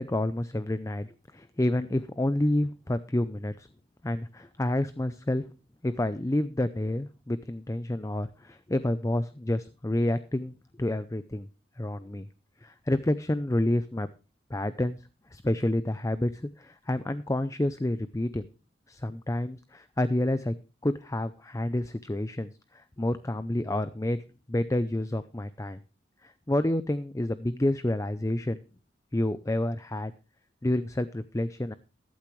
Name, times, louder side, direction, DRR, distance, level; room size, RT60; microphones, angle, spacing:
voice 1, 0.0-3.7 4.0-5.5 5.8-11.5 11.8-12.3 12.6-14.1 14.5-15.0 15.3-18.4 18.9-20.5 20.8-24.2 24.5-25.8 26.2-28.6 29.1-30.1 30.6-31.7, left 1 dB, 15° left, 13 dB, 0.5 m, -29 dB
14.5 x 12.0 x 3.1 m, 0.33 s
head